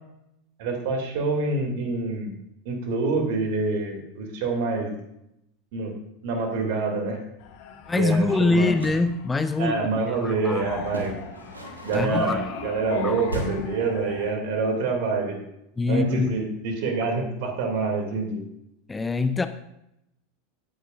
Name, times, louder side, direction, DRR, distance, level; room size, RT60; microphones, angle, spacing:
voice 1, 0.6-2.3 2.6-4.9 5.7-5.9 6.2-7.2 7.9-8.7 9.6-11.2 11.8-15.4 15.9-18.4, right 3 dB, 55° right, 3 dB, 2.7 m, -26 dB
sound 1, 7.4-14.3, left 7 dB, 50° left, 1.5 m, -40 dB
voice 2, 7.9-9.8 10.2-10.8 11.9-12.4 13.0-13.1 15.8-16.3 18.9-19.5, left 3 dB, 15° left, 11 dB, 0.5 m, -23 dB
sound 2, 8.6-9.1 10.9-12.3 13.3-13.8, right 1 dB, 80° right, 1.7 m, -35 dB
17.5 x 9.0 x 2.6 m, 0.80 s
figure-of-eight pair, 80°, 0 cm